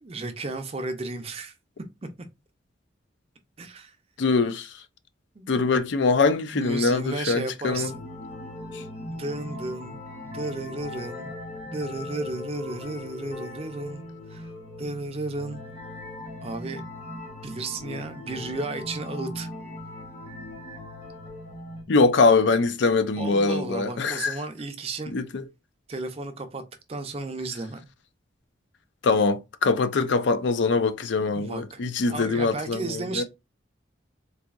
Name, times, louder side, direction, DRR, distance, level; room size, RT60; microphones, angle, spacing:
voice 1, 0.0-1.5 3.6-4.0 5.4-5.5 6.5-8.0 9.1-10.0 10.3-11.3 11.6-14.0 14.3-14.5 14.8-15.6 16.4-16.8 17.4-19.5 23.2-25.1 25.9-26.6 26.9-27.8 31.3-31.8 32.1-33.2, right 3 dB, 30° right, 0.4 m, -33 dB
voice 2, 4.2-4.7 5.5-7.9 8.7-8.8 21.9-24.3 25.1-25.4 29.0-32.8 33.2-33.3, left 4 dB, 70° left, 0.5 m, -23 dB
sound 1, 7.7-21.8, left 1 dB, 35° left, 1.0 m, -39 dB
4.0 x 2.6 x 2.4 m
head